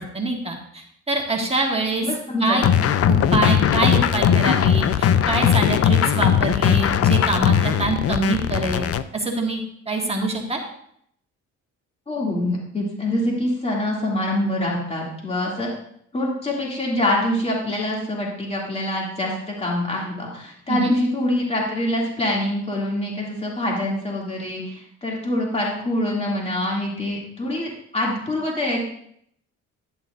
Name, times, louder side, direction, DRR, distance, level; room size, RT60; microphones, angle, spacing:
voice 1, 0.0-2.1 2.4-2.6 3.1-10.6 20.7-20.9, right 2 dB, 20° right, 0 dB, 1.5 m, -25 dB
voice 2, 2.0-2.8 12.1-15.7 16.1-28.8, left 1 dB, 20° left, -3 dB, 2.6 m, -25 dB
sound 1, 2.6-9.0, left 9 dB, 50° left, 0.5 m, -19 dB
11.0 x 9.3 x 2.6 m, 0.68 s
cardioid pair, 90°, 30 cm